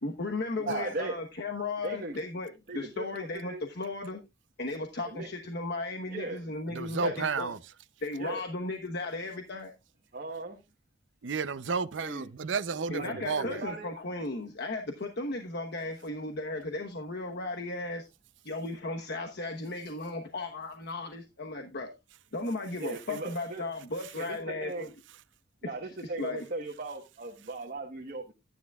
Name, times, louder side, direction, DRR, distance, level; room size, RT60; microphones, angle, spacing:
voice 1, 0.0-4.2 4.6-7.5 8.0-9.7 12.9-18.1 18.4-21.9 22.3-24.9 25.6-25.7 26.0-26.4, left 2 dB, 60° left, 1.1 m, -35 dB
voice 2, 0.6-1.2 1.8-2.2 2.7-3.6 5.0-5.3 6.1-6.4 7.0-7.2 8.2-8.4 10.1-10.6 12.0-12.3 12.9-13.9 22.8-23.6 24.2-24.9 25.6-28.3, right 2 dB, 50° right, 1.3 m, -38 dB
voice 3, 6.7-7.6 11.2-13.6, right 5 dB, 70° right, 0.6 m, -32 dB
13.0 x 9.8 x 2.4 m
head